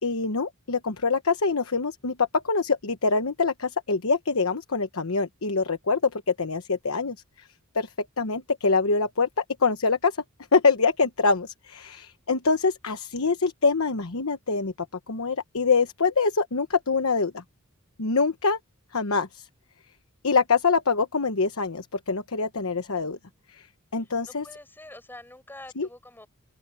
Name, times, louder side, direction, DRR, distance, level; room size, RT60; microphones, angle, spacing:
voice 1, 0.0-7.5 7.7-10.2 10.5-14.7 15.1-17.4 18.0-18.6 18.9-19.5 20.2-23.2 23.5-23.7 23.9-24.5 25.8-25.9, left 4 dB, 70° left, 1.1 m, -25 dB
voice 2, 24.3-26.3, left 1 dB, 10° left, 7.8 m, -45 dB
head